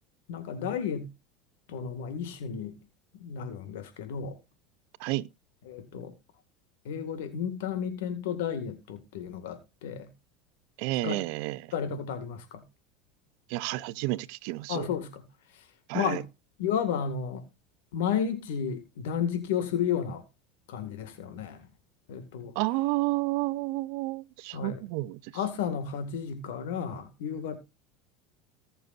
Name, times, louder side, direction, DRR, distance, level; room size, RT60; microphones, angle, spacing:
voice 1, 0.3-1.1 1.7-2.7 3.1-4.4 5.7-6.1 6.9-10.1 11.0-11.2 11.7-12.6 14.7-15.2 15.5-15.6 15.9-16.2 16.6-17.5 17.9-20.2 20.7-21.7 22.1-22.5 24.5-24.8 25.3-27.6, left 7 dB, 80° left, 2.0 m, -32 dB
voice 2, 10.8-11.7 13.5-14.9 15.9-16.2 22.5-25.3, right 19 dB, 65° right, 0.7 m, -31 dB
19.0 x 6.9 x 2.6 m
supercardioid pair, 120°, 0 cm